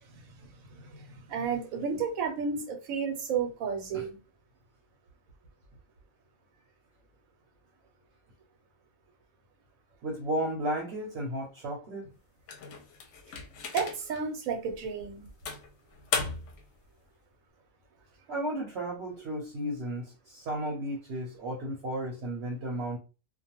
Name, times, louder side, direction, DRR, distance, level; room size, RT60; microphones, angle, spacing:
voice 1, 1.3-4.2 13.7-15.3, right 6 dB, 85° right, 1.1 m, -32 dB
voice 2, 10.0-12.1 18.3-23.0, right 1 dB, 60° right, 0.9 m, -34 dB
sound 1, 12.5-14.2 14.7-14.9 15.5-16.7, left 5 dB, 70° left, 0.8 m, -36 dB
2.4 x 2.2 x 2.9 m
omnidirectional pair, 1.4 m